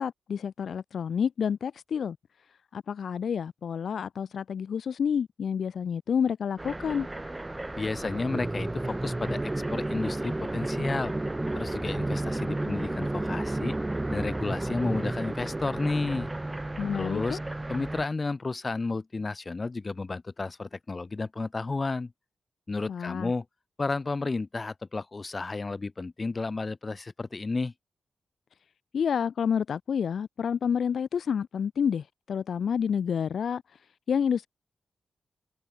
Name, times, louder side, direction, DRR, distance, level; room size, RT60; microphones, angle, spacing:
voice 1, 0.0-2.2 2.7-7.1 16.8-17.4 22.9-23.3 28.9-33.6 34.1-34.5, left 7 dB, 75° left, 2.1 m, -29 dB
sound 1, 6.6-18.1, right 2 dB, 20° right, 3.4 m, -32 dB
voice 2, 7.8-11.1 11.5-13.8 14.1-16.3 16.9-17.4 17.7-22.1 22.7-23.4 23.8-27.7, left 3 dB, 40° left, 4.3 m, -32 dB
cardioid pair, 60°, 0 cm